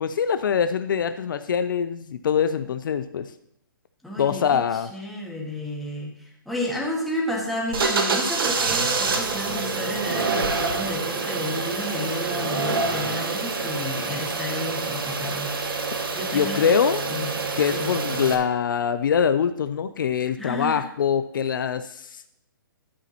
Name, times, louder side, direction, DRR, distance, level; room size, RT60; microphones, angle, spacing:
voice 1, 0.0-3.3 4.2-4.9 16.3-17.0 17.6-22.3, left 7 dB, 65° left, 11 dB, 0.5 m, -24 dB
voice 2, 4.0-15.5 16.1-16.6 17.1-17.3 17.7-17.9 20.4-20.8, left 1 dB, ahead, -3 dB, 1.7 m, -31 dB
sound 1, 7.7-18.3, right 4 dB, 75° right, 1.5 m, -26 dB
11.5 x 9.0 x 3.0 m, 0.77 s
hypercardioid pair, 150°, 12 cm